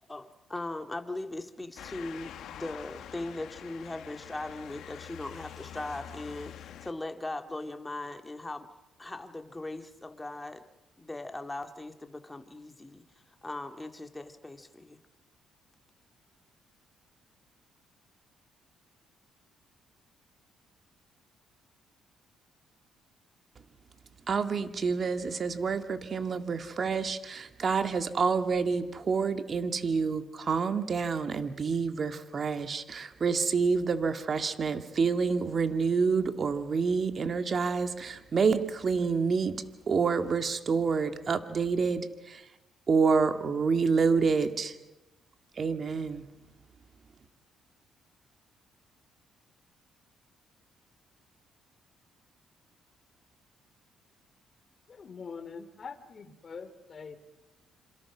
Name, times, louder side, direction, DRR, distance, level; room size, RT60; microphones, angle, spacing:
voice 1, 0.1-8.7 9.0-10.6 11.0-13.0 13.4-15.0, left 2 dB, 15° left, 6 dB, 2.2 m, -39 dB
Motor vehicle (road) / Siren, 1.8-6.9, left 10 dB, 75° left, 1.3 m, -46 dB
voice 2, 24.3-39.6 39.9-42.4 42.9-44.7 45.6-46.2, right 5 dB, 45° right, 8 dB, 2.0 m, -28 dB
voice 3, 54.9-57.2, left 5 dB, 40° left, 9 dB, 3.2 m, -44 dB
27.5 x 26.5 x 6.1 m, 0.99 s
cardioid pair, 95°, 0 cm